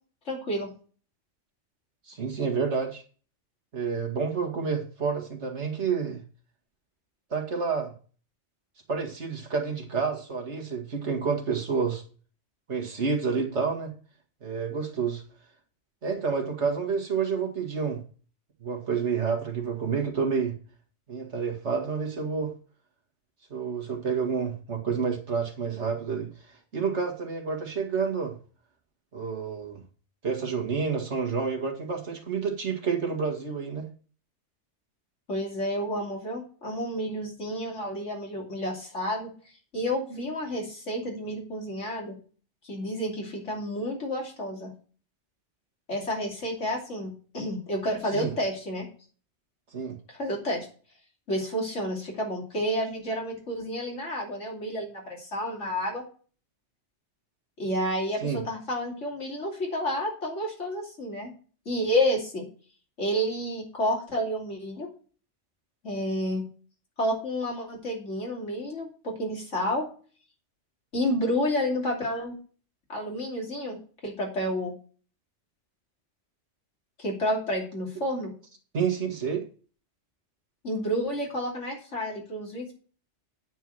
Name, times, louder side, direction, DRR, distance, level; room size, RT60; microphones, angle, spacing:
voice 1, 0.2-0.7 35.3-39.3 39.7-42.2 42.6-44.7 45.9-48.8 50.1-50.7 51.3-56.0 57.6-61.3 61.6-62.5 63.0-64.9 65.8-66.4 67.0-69.9 70.9-72.4 72.9-74.7 77.0-78.3 80.6-82.7, equal, 85° left, -1 dB, 3.2 m, -30 dB
voice 2, 2.1-3.0 3.7-6.2 7.3-7.9 8.9-12.0 12.7-13.9 14.4-15.2 16.0-18.0 18.6-20.6 21.1-22.5 23.5-28.3 29.1-29.8 30.2-33.9 48.1-48.3 49.7-50.0 58.2-58.4 78.7-79.5, right 5 dB, 70° right, 2 dB, 2.1 m, -29 dB
9.3 x 4.6 x 7.6 m, 0.40 s
omnidirectional pair, 1.2 m